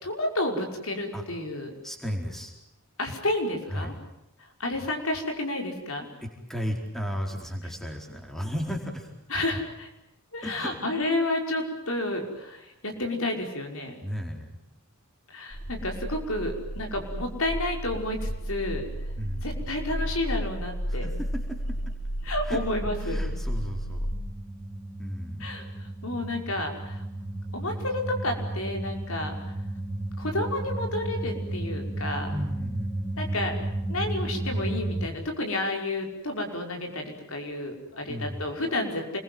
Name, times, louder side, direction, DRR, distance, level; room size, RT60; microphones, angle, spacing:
voice 1, 0.0-1.7 3.0-3.9 4.6-6.1 9.3-9.9 10.3-14.0 15.3-18.8 19.4-21.1 22.2-23.2 25.4-27.0 27.5-29.3 30.2-32.4 33.2-33.5 33.9-39.2, left 1 dB, 70° left, 3 dB, 5.6 m, -31 dB
voice 2, 1.8-2.5 3.7-3.9 6.2-9.1 10.4-10.8 14.0-14.5 19.2-19.6 20.9-21.8 22.4-22.6 23.0-24.1 25.0-25.6 32.3-33.4 38.1-38.4, equal, ahead, 2 dB, 4.5 m, -34 dB
sound 1, 15.5-35.1, right 1 dB, 20° left, 4.4 m, -33 dB
28.5 x 22.5 x 7.9 m, 0.87 s
head